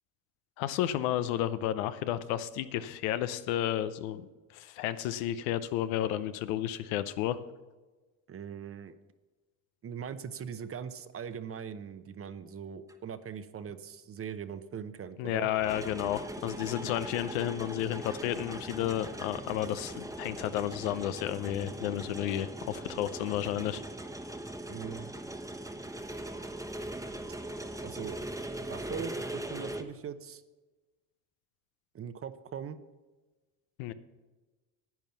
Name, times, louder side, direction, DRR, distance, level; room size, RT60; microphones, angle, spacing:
voice 1, 0.6-7.4 15.2-23.8 33.8-33.9, left 12 dB, 90° left, 13 dB, 0.8 m, -32 dB
voice 2, 8.3-8.9 9.8-15.5 24.7-25.1 27.8-28.2 28.6-30.4 31.9-32.8, right 7 dB, 35° right, 12 dB, 0.8 m, -41 dB
sound 1, 12.9-13.0 15.5-29.8, right 1 dB, 10° right, 1.0 m, -40 dB
10.5 x 9.2 x 5.7 m, 1.2 s
supercardioid pair, 95°, 41 cm